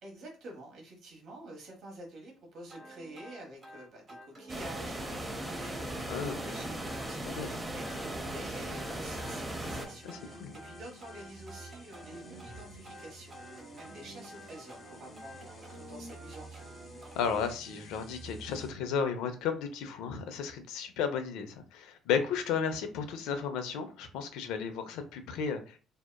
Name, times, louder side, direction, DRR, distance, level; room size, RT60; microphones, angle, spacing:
voice 1, 0.0-16.7, right 1 dB, 65° right, 0 dB, 1.0 m, -49 dB
sound 1, 2.7-17.5, right 1 dB, 40° right, 0.9 m, -50 dB
sound 2, 4.5-9.9, right 1 dB, 15° right, 0.6 m, -38 dB
sound 3, 9.1-18.7, right 2 dB, 40° left, 1.0 m, -51 dB
voice 2, 10.0-10.5 17.2-25.8, left 6 dB, 80° left, 7 dB, 0.4 m, -34 dB
2.7 x 2.2 x 2.2 m, 0.36 s
supercardioid pair, 70°, 0 cm